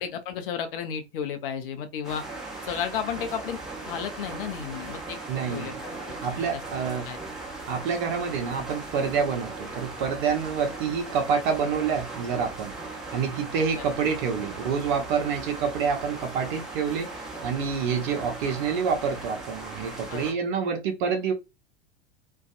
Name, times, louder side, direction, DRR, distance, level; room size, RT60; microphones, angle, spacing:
voice 1, 0.0-2.2 2.6-3.6 3.9-5.2 5.5-5.9 6.2-6.5 7.1-7.2 13.8-13.9 20.1-20.3, left 8 dB, 60° left, 0.6 m, -33 dB
sound 1, 2.0-20.3, right 3 dB, ahead, 0.9 m, -38 dB
voice 2, 5.3-5.8 6.2-7.0 7.7-12.7 13.1-21.3, right 6 dB, 50° right, 0.6 m, -27 dB
2.5 x 2.3 x 2.4 m
figure-of-eight pair, 85°, 32 cm